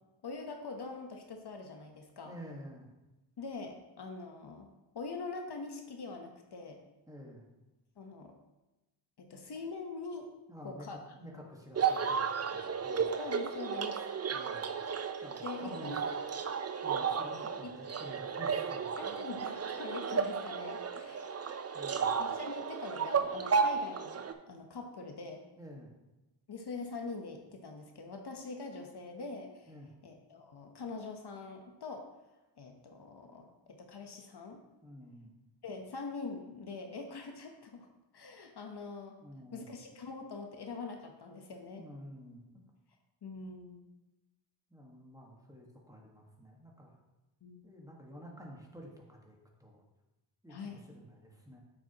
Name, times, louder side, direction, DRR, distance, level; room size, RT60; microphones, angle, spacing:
voice 1, 0.2-2.4 3.4-4.7 4.9-6.8 8.0-8.3 9.2-10.3 10.6-11.0 13.2-14.0 15.4-16.1 17.6-17.7 19.0-21.5 22.2-25.4 26.5-29.7 30.0-32.1 32.6-34.6 35.6-37.9 38.1-39.2 39.5-41.9 43.2-43.8 47.4-47.7 50.5-50.9, left 4 dB, 55° left, 3 dB, 1.0 m, -44 dB
voice 2, 2.2-2.9 7.1-7.5 10.5-13.1 14.3-14.7 15.2-16.0 16.8-19.2 21.7-22.2 25.6-25.9 29.7-29.9 34.8-35.3 39.2-39.7 41.8-42.4 44.7-46.9 47.6-49.8 50.4-51.6, equal, 5° right, -1 dB, 1.4 m, -50 dB
sound 1, 11.8-24.3, right 6 dB, 35° right, 0.5 m, -33 dB
8.5 x 6.7 x 2.9 m, 1.0 s
cardioid pair, 90°, 47 cm